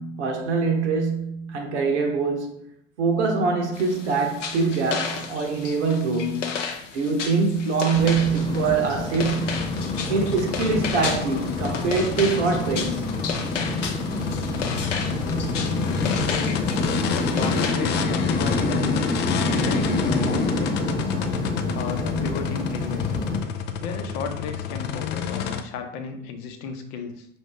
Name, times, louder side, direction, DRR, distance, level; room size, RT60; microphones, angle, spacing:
voice 1, 0.0-2.6 3.0-6.6 6.9-9.6 10.1-13.2 22.2-22.3, right 4 dB, 70° right, 0.9 m, -24 dB
sound 1, 3.7-17.8, left 6 dB, 80° left, 0.6 m, -33 dB
sound 2, 7.9-23.4, left 2 dB, 10° left, 0.9 m, -27 dB
sound 3, 9.1-25.6, left 8 dB, 30° left, 0.4 m, -30 dB
voice 2, 17.0-19.1 19.5-21.2 21.7-23.1 23.8-27.3, left 5 dB, 50° left, 0.9 m, -34 dB
5.6 x 2.6 x 3.3 m
figure-of-eight pair, 70°, 36 cm